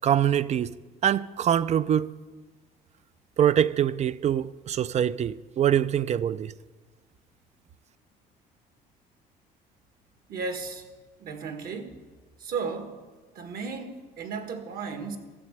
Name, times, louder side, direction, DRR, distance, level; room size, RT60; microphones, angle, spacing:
voice 1, 0.0-0.7 1.0-2.1 3.4-6.5, right 10 dB, 40° right, 0.5 m, -24 dB
voice 2, 10.3-10.9 11.2-12.0 12.4-13.0 13.3-15.2, right 5 dB, 60° right, 1.8 m, -34 dB
14.0 x 7.4 x 8.0 m
cardioid pair, 110°, 17 cm